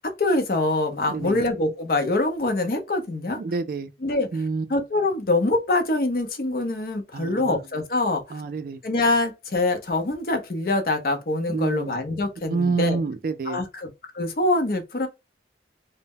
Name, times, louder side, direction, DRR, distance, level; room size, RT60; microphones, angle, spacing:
voice 1, 0.0-3.4 4.0-4.3 4.7-8.2 8.8-13.0 13.4-13.9 14.1-15.1, left 2 dB, 55° left, 0.5 m, -24 dB
voice 2, 1.1-1.4 3.4-3.9 4.3-4.7 7.1-7.6 8.3-8.8 11.5-11.9 12.5-13.6, right 4 dB, 55° right, 0.3 m, -27 dB
2.0 x 2.0 x 3.4 m
head